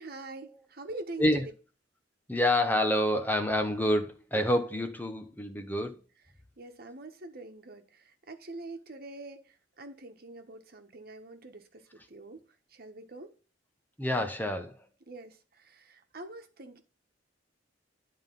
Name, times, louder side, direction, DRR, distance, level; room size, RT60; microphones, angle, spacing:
voice 1, 0.0-1.3 6.6-12.4 12.7-13.3 15.1-16.8, right 2 dB, 55° right, 1.3 m, -45 dB
voice 2, 2.3-6.0 14.0-14.8, left 1 dB, 10° left, 0.8 m, -27 dB
11.0 x 3.7 x 5.4 m
head